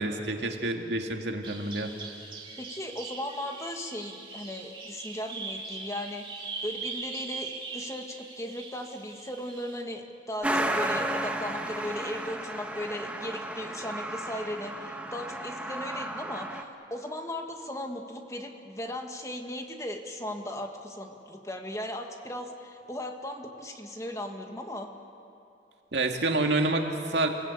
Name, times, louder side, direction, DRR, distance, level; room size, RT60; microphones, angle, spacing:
voice 1, 0.0-1.9 25.9-27.3, right 2 dB, 80° right, 3 dB, 2.2 m, -28 dB
Bird vocalization bird call bird song, 1.4-9.8, right 4 dB, 30° right, 2.6 m, -41 dB
voice 2, 2.6-24.9, left 1 dB, 15° left, 4 dB, 1.6 m, -37 dB
Truck, 10.4-16.6, right 1 dB, 10° right, 1.2 m, -33 dB
29.5 x 17.5 x 8.3 m, 2.7 s
head